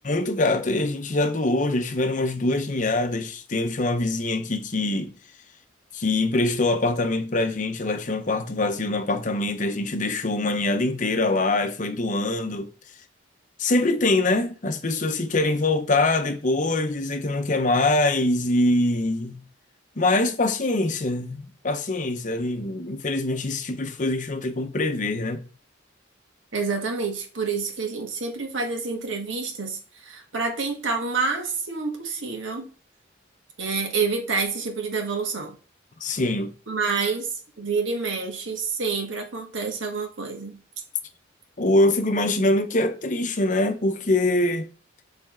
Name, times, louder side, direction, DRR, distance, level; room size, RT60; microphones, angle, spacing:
voice 1, 0.0-5.1 5.9-12.7 13.6-19.4 20.0-21.4 21.6-25.5 36.0-36.5 41.6-44.7, left 2 dB, 40° left, 0.7 m, -24 dB
voice 2, 26.5-32.7 33.6-35.5 36.7-40.6, right 4 dB, 75° right, 1.5 m, -28 dB
6.9 x 3.4 x 4.3 m
head